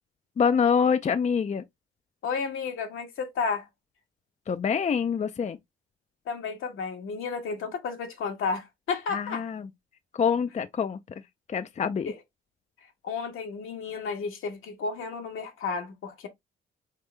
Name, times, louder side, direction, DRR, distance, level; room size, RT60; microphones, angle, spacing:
voice 1, 0.4-1.6 4.5-5.6 9.1-9.7 10.1-11.2 11.5-12.1, left 6 dB, 35° left, 0.5 m, -26 dB
voice 2, 2.2-3.6 6.3-9.4 12.0-12.1 13.0-16.3, left 5 dB, 80° left, 1.4 m, -32 dB
3.8 x 3.7 x 3.2 m
cardioid pair, 75°, 21 cm